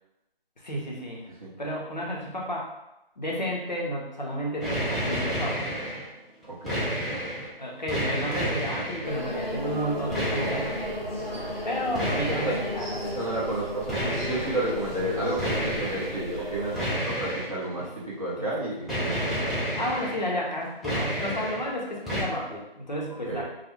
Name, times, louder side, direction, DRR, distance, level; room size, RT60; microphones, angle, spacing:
voice 1, 0.6-1.3 1.6-2.7 3.2-5.7 7.6-10.7 11.6-13.0 17.7-17.9 18.4-18.5 19.1-19.2 19.7-23.4, equal, 50° left, -3 dB, 0.6 m, -32 dB
sound 1, 4.6-6.1 6.4-7.5 7.9-9.1 10.1-11.0 11.9-12.8 13.9-14.7 15.4-16.2 16.8-17.9 18.9-20.3 20.6-21.7 22.0-22.2, equal, ahead, 0.3 m, -30 dB
sound 2, 9.0-16.8, left 1 dB, 15° left, 0.9 m, -34 dB
voice 2, 13.0-19.2 23.3-23.4, right 2 dB, 35° right, -7 dB, 0.7 m, -31 dB
2.2 x 2.1 x 3.0 m, 0.91 s
figure-of-eight pair, 175°, 29 cm